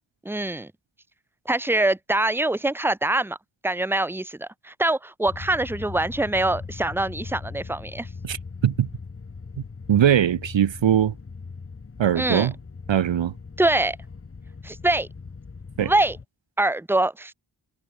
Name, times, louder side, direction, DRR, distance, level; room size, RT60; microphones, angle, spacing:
voice 1, 0.2-0.7 1.5-3.4 3.6-8.1 12.1-12.5 13.6-14.0 14.6-15.1 15.8-16.2 16.6-17.3, right 2 dB, 5° right, 0.9 m, -24 dB
sound 1, 5.3-16.2, left 4 dB, 30° left, 0.8 m, -40 dB
voice 2, 9.9-11.1 12.0-12.5 12.9-13.3 15.8-15.9, right 10 dB, 70° right, 0.7 m, -20 dB
wide cardioid pair, 70°, 46 cm